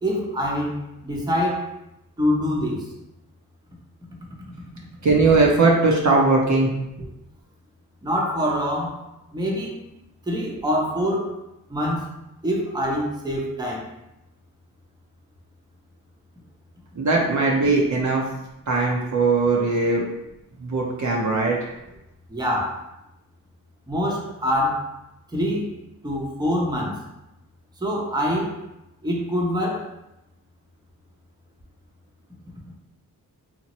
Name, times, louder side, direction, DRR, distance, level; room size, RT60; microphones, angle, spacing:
voice 1, 0.0-1.7 2.2-2.9 8.0-9.0 9.3-9.8 10.3-11.4 11.7-12.1 12.4-13.9 22.3-22.8 23.9-24.9 25.3-25.7 26.0-27.0 27.8-28.6 29.0-29.9, equal, 10° right, -2 dB, 0.7 m, -25 dB
voice 2, 5.0-6.7 7.0-7.1 17.0-18.2 18.7-20.0 20.6-21.7, right 3 dB, 50° right, -2 dB, 0.6 m, -19 dB
2.9 x 2.1 x 2.9 m, 0.90 s
cardioid pair, 45°, 38 cm